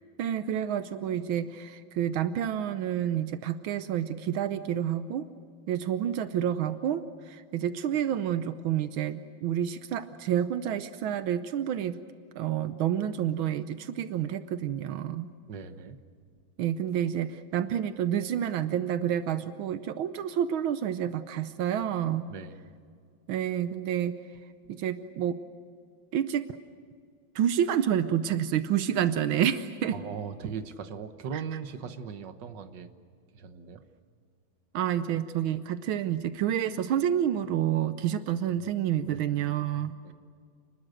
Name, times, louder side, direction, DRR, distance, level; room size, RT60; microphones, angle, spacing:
voice 1, 0.2-5.3 5.7-12.0 12.3-15.3 16.6-22.3 23.3-24.1 24.7-25.4 26.1-26.5 27.3-30.0 31.3-31.4 34.7-39.9, right 10 dB, 85° right, 11 dB, 1.6 m, -29 dB
voice 2, 15.5-16.0 22.3-22.7 29.9-32.9 33.3-33.8 39.0-39.2 39.8-40.1, right 6 dB, 65° right, 9 dB, 1.8 m, -39 dB
29.5 x 21.0 x 6.5 m, 2.2 s
omnidirectional pair, 2.2 m